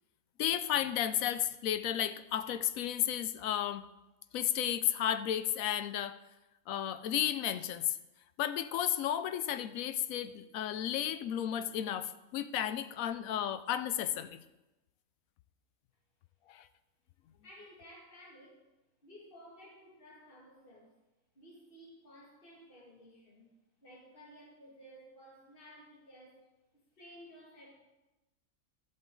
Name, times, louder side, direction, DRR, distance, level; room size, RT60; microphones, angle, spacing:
voice 1, 0.4-3.8 4.3-6.2 6.7-8.0 8.4-14.4 16.5-16.7, left 10 dB, 75° left, 13 dB, 1.0 m, -33 dB
voice 2, 17.4-18.7 19.0-20.9 21.3-23.5 23.8-26.5 27.0-27.7, equal, 40° left, -4 dB, 2.4 m, -55 dB
13.0 x 7.7 x 3.9 m, 1.0 s
omnidirectional pair, 1.5 m